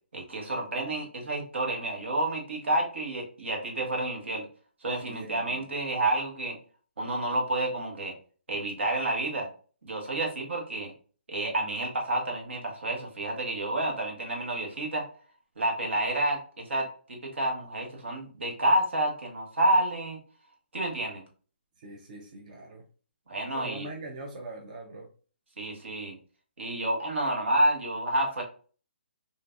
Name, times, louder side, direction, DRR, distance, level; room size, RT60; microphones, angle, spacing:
voice 1, 0.1-4.5 4.8-6.5 7.0-8.1 8.5-9.5 9.8-10.9 11.3-15.0 15.6-20.2 20.7-21.2 23.3-23.9 25.6-26.2 26.6-28.4, right 1 dB, 80° right, 0 dB, 1.3 m, -29 dB
voice 2, 5.0-5.7 21.8-22.8 23.5-25.1, right 2 dB, 40° right, 1 dB, 0.5 m, -42 dB
3.7 x 2.5 x 2.2 m, 0.40 s
hypercardioid pair, 165°, 6 cm